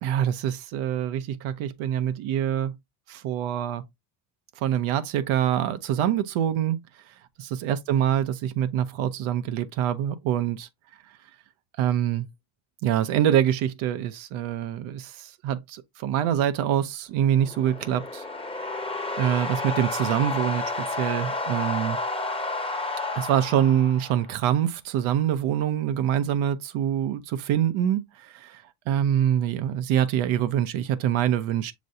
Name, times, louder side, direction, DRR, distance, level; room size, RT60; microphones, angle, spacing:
voice 1, 0.0-2.7 3.1-3.8 4.6-6.8 7.4-10.7 11.8-12.3 12.8-18.2 19.2-22.0 23.1-31.7, right 10 dB, 75° right, 0.8 m, -25 dB
sound 1, 17.3-24.4, left 3 dB, 10° left, 0.9 m, -31 dB
6.5 x 3.1 x 2.6 m
cardioid pair, 105°, 48 cm